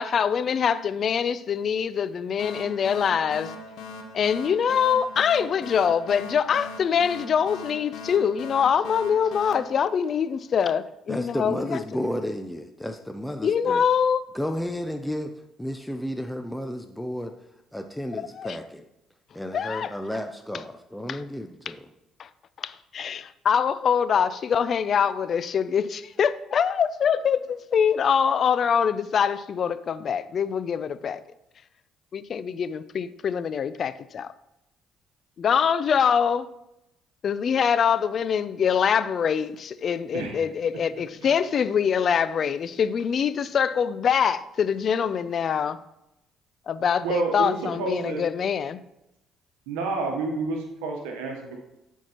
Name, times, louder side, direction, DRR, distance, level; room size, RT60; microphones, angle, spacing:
voice 1, 0.0-3.5 4.1-11.8 13.4-14.2 18.4-18.6 19.5-19.9 21.1-21.2 22.2-22.3 22.6-31.2 32.1-34.3 35.4-36.5 37.2-45.8 46.7-48.8, left 7 dB, 55° left, 0.4 m, -24 dB
sound 1, 2.4-10.7, left 3 dB, 75° left, 0.9 m, -41 dB
voice 2, 11.1-13.8 14.3-15.3 15.6-17.3 17.7-18.8 19.3-21.8, equal, 5° left, 0.5 m, -32 dB
voice 3, 47.0-48.2 49.7-51.6, right 3 dB, 85° right, 1.0 m, -29 dB
11.5 x 4.6 x 3.0 m
supercardioid pair, 60°, 0 cm